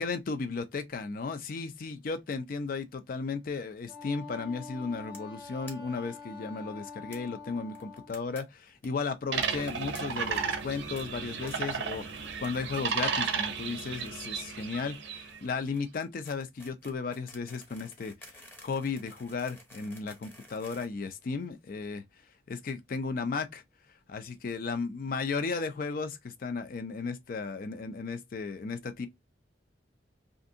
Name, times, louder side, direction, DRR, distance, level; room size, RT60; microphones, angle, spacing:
voice 1, 0.0-22.0 22.5-23.6 24.1-29.1, left 4 dB, 50° left, 0.4 m, -35 dB
Wind instrument woodwind instrument, 3.9-8.1, left 4 dB, 85° left, 1.3 m, -45 dB
sound 1, 5.1-5.3 5.7-5.8 6.0-6.1 6.3-6.4 7.1-7.2 7.7-8.4 8.7-8.9 9.4-10.0 10.3-10.6 11.0-11.1 11.5-11.8 12.1-12.5 12.7-13.3 13.6-21.7, left 1 dB, 10° left, 0.6 m, -52 dB
sound 2, 9.3-15.4, right 5 dB, 80° right, 0.5 m, -33 dB
2.6 x 2.5 x 2.5 m
head